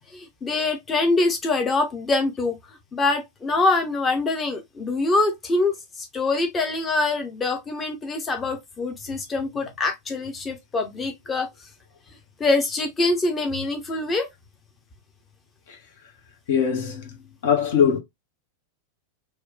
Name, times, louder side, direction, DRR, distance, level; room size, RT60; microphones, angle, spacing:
voice 1, 0.1-2.6 2.9-11.5 12.4-14.3, left 3 dB, 20° left, 0.7 m, -24 dB
voice 2, 16.5-17.2 17.4-18.0, left 7 dB, 55° left, 0.8 m, -21 dB
3.1 x 2.1 x 3.2 m
figure-of-eight pair, 90°, 0 cm